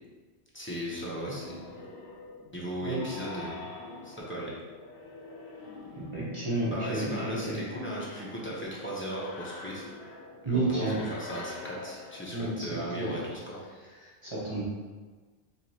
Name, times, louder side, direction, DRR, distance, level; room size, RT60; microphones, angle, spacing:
voice 1, 0.5-1.8 2.5-3.7 4.0-4.5 6.7-9.9 10.4-13.6, equal, 10° left, -6 dB, 0.8 m, -37 dB
sound 1, 0.9-12.9, left 3 dB, 70° left, 0.9 m, -46 dB
voice 2, 5.9-7.6 10.4-11.0 12.3-13.1 14.0-14.6, right 2 dB, 30° right, -8 dB, 0.9 m, -31 dB
4.9 x 3.3 x 2.9 m, 1.4 s
omnidirectional pair, 1.1 m